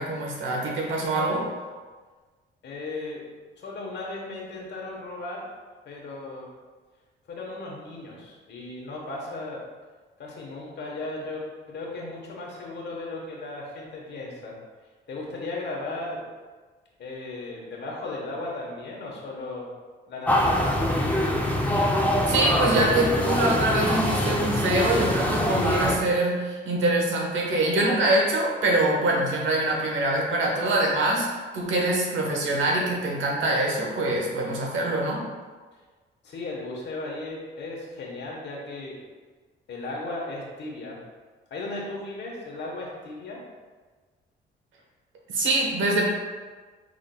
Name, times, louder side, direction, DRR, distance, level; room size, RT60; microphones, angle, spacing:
voice 1, 0.0-1.4 22.2-31.3 31.5-35.2 45.3-46.1, right 2 dB, 75° right, -1 dB, 1.1 m, -24 dB
voice 2, 2.6-3.2 3.6-5.4 5.8-6.5 7.3-9.6 10.2-14.5 15.1-16.2 17.0-19.7 20.1-21.0 36.2-39.0 39.7-41.0 41.5-43.4, left 2 dB, 60° left, -2 dB, 1.1 m, -36 dB
sound 1, 20.3-26.0, left 1 dB, 10° left, 0.5 m, -24 dB
5.0 x 3.7 x 2.2 m, 1.4 s
cardioid pair, 90°, 20 cm